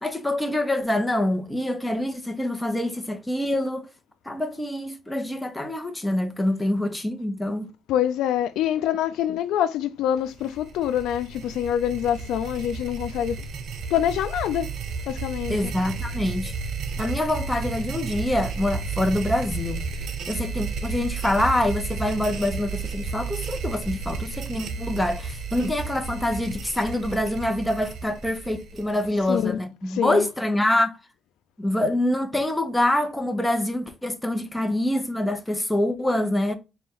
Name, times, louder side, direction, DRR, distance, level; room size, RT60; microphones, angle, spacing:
voice 1, 0.0-3.9 4.2-7.7 15.5-16.5 17.0-19.8 20.3-31.0 31.6-36.5, left 1 dB, 10° left, 0.9 m, -25 dB
voice 2, 7.9-13.4 13.9-14.7 15.1-15.7 29.2-29.6 29.9-30.3, left 10 dB, 85° left, 0.4 m, -25 dB
sound 1, 10.3-29.4, right 4 dB, 65° right, 0.8 m, -33 dB
4.3 x 2.5 x 3.5 m
cardioid pair, 90°, 0 cm